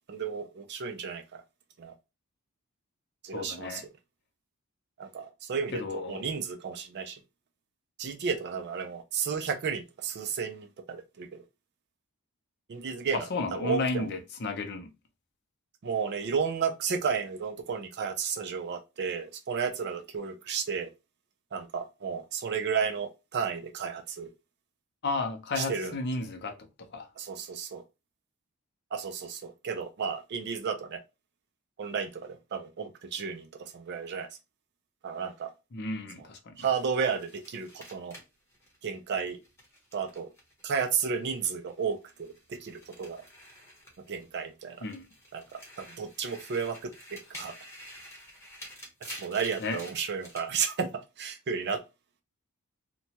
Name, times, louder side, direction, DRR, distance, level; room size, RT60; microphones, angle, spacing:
voice 1, 0.1-1.4 1.8-1.9 3.2-3.8 5.0-7.2 8.0-11.3 12.7-13.2 13.5-14.1 15.8-20.9 21.5-24.3 25.6-25.9 27.2-27.8 28.9-31.0 31.8-34.3 35.0-35.5 36.6-38.2 38.8-39.4 39.9-40.3 40.6-43.2 44.1-44.8 45.3-47.5 49.0-50.9 51.2-51.8, right 6 dB, 50° right, 0.4 m, -33 dB
voice 2, 3.3-3.8 5.7-6.2 13.1-14.9 25.0-27.1 35.7-36.5 44.8-45.1 49.6-49.8, left 3 dB, 50° left, 0.5 m, -33 dB
sound 1, 36.6-41.1 41.4-44.4 44.8-50.5, equal, 10° left, 0.9 m, -49 dB
2.9 x 2.2 x 2.7 m
head